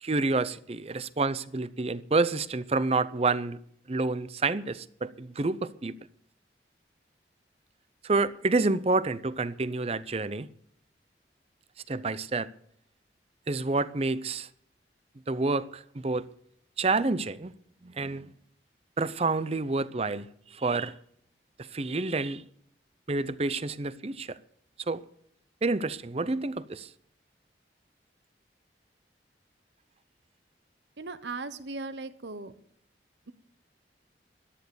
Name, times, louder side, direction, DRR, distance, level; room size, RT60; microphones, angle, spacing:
voice 1, 0.0-3.6 3.9-6.0 8.0-10.5 11.9-12.5 13.5-14.5 15.3-16.3 16.8-17.5 17.8-18.3 19.0-20.9 21.6-22.4 23.1-24.4 24.9-25.0 25.6-26.9, right 3 dB, 35° right, 0.6 m, -28 dB
voice 2, 31.0-32.5, right 3 dB, 85° right, 1.1 m, -37 dB
14.5 x 10.5 x 7.0 m
head